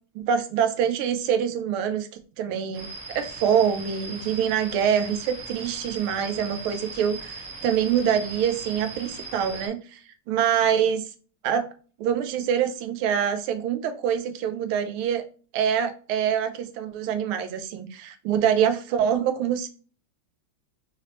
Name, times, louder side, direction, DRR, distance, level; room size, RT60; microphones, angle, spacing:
voice 1, 0.1-2.1 2.4-10.0 10.3-11.0 11.4-11.7 12.0-15.2 15.5-19.7, right 8 dB, 90° right, 8 dB, 1.5 m, -25 dB
sound 1, 2.7-9.7, right 3 dB, 55° right, 0.9 m, -39 dB
4.3 x 2.9 x 3.0 m, 0.40 s
omnidirectional pair, 2.2 m